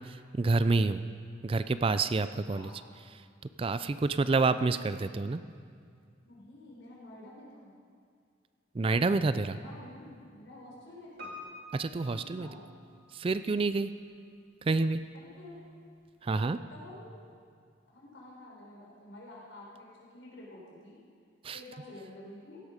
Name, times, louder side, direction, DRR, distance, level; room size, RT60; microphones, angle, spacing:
voice 1, 0.1-1.0 1.4-2.7 3.6-5.4 8.7-9.6 11.7-12.5 13.1-13.9 14.7-15.0 16.2-16.6 21.4-21.6, right 3 dB, 30° right, 12 dB, 0.3 m, -28 dB
voice 2, 6.2-7.7 9.5-11.4 12.1-12.6 15.1-15.6 16.3-17.2 17.9-21.0 21.5-22.6, left 1 dB, 80° left, -4 dB, 4.6 m, -49 dB
Piano, 11.2-13.2 13.5-13.6, left 1 dB, 55° right, 2.0 m, -47 dB
16.0 x 12.0 x 5.2 m, 2.2 s
head